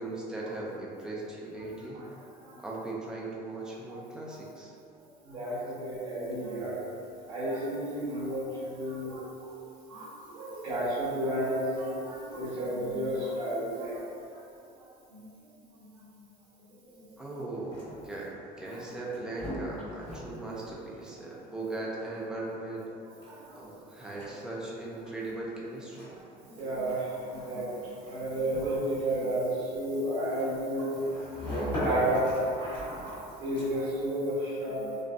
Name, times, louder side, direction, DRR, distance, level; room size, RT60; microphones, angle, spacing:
voice 1, 0.0-2.0 2.6-4.8 17.2-22.9 23.5-26.1, right 2 dB, 5° right, -5 dB, 0.4 m, -38 dB
voice 2, 2.3-2.6 3.9-4.0 4.3-4.4 5.2-6.8 7.2-9.5 9.9-14.4 14.8-15.5 15.7-16.0 16.7-17.1 18.6-18.8 23.2-23.6 24.1-24.4 26.1-35.0, right 1 dB, 50° right, -14 dB, 1.3 m, -33 dB
sound 1, 17.5-34.0, equal, 25° left, 1.1 m, -41 dB
5.1 x 2.2 x 2.6 m, 2.5 s
cardioid pair, 175°, 18 cm